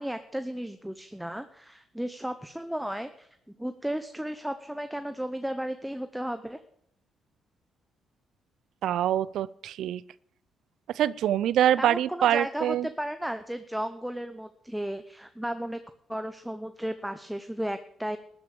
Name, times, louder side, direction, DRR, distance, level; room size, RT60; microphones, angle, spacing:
voice 1, 0.0-3.3 3.6-6.6 11.8-15.8 16.1-18.2, right 1 dB, 5° right, 9 dB, 0.9 m, -34 dB
voice 2, 8.8-10.0 10.9-12.9, right 11 dB, 75° right, 20 dB, 0.4 m, -25 dB
13.5 x 9.4 x 6.9 m, 0.70 s
cardioid pair, 90°, 0 cm